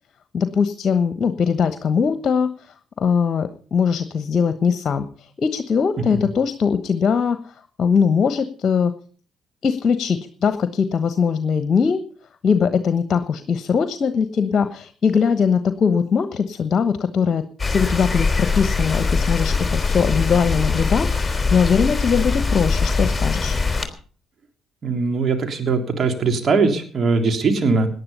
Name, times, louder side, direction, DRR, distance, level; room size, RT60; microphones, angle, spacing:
voice 1, 0.3-2.7 3.0-8.9 9.6-12.0 12.4-17.5 17.7-23.6, left 6 dB, 45° left, 11 dB, 1.1 m, -21 dB
sound 1, 17.6-23.9, left 4 dB, 20° left, 3.5 m, -22 dB
voice 2, 24.8-27.9, right 4 dB, 45° right, 5 dB, 3.3 m, -20 dB
18.5 x 10.5 x 5.5 m, 0.44 s
hypercardioid pair, 50°, 0 cm